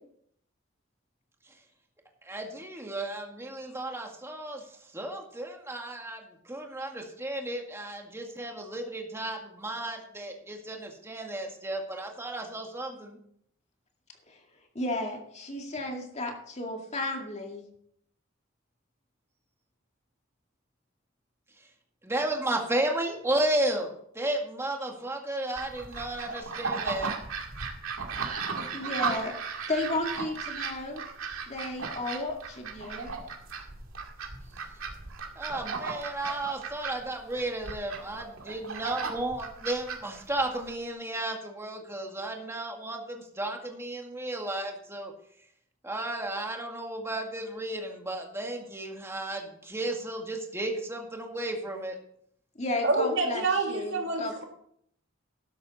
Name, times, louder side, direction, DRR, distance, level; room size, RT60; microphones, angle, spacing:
voice 1, 2.3-4.6 4.9-6.2 6.5-13.2 22.0-23.9 24.2-27.1 35.4-45.1 45.8-52.0, right 1 dB, 15° right, 2 dB, 2.0 m, -33 dB
voice 2, 14.7-17.6 28.7-31.0 31.5-33.1 52.6-54.4, left 2 dB, 35° left, 2 dB, 2.1 m, -33 dB
sound 1, 25.6-40.7, right 5 dB, 90° right, 2.2 m, -36 dB
voice 3, 52.8-54.4, right 3 dB, 65° right, 2 dB, 2.5 m, -27 dB
13.0 x 10.5 x 4.2 m, 0.67 s
head